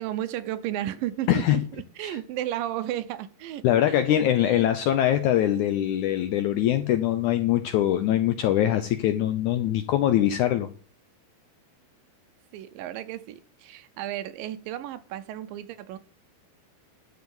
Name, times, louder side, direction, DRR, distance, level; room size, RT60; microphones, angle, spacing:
voice 1, 0.0-4.7 12.5-16.0, right 12 dB, 80° right, 12 dB, 2.3 m, -34 dB
voice 2, 1.3-1.6 2.0-2.2 3.6-10.7, left 12 dB, 80° left, 9 dB, 1.8 m, -23 dB
12.0 x 5.2 x 7.8 m, 0.41 s
omnidirectional pair, 4.2 m